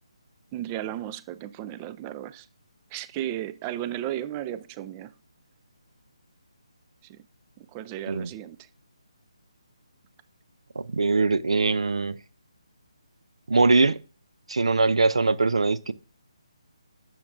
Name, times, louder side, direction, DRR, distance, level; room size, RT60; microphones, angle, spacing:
voice 1, 0.5-2.5 2.9-5.1 7.0-7.2 7.6-8.6, right 12 dB, 20° right, 0.4 m, -34 dB
voice 2, 10.8-12.2 13.5-14.0 14.5-15.9, right 3 dB, 70° right, 0.6 m, -22 dB
10.5 x 7.4 x 2.5 m
figure-of-eight pair, 150°, 3 cm